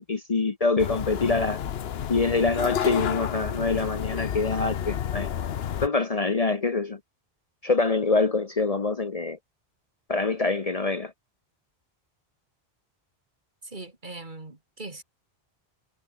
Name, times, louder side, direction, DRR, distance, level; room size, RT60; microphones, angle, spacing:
voice 1, 0.1-1.6 2.1-5.3 5.8-7.0 7.6-9.4 10.1-11.1, left 3 dB, 40° left, 1.0 m, -25 dB
sound 1, 0.8-5.9, left 9 dB, 75° left, 1.0 m, -30 dB
voice 2, 13.6-15.0, right 2 dB, 50° right, 3.0 m, -40 dB
omnidirectional pair, 1.1 m